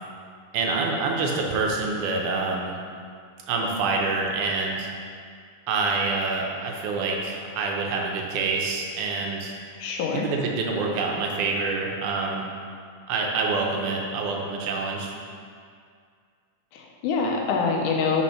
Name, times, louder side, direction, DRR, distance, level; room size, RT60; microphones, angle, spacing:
voice 1, 0.5-2.7 3.5-4.9 5.7-9.5 10.1-12.5 13.1-15.1, right 3 dB, 80° right, 0 dB, 2.2 m, -26 dB
voice 2, 9.8-10.3 16.7-18.2, left 5 dB, 90° left, 0 dB, 2.3 m, -25 dB
5.3 x 4.2 x 5.7 m, 2.2 s
omnidirectional pair, 3.5 m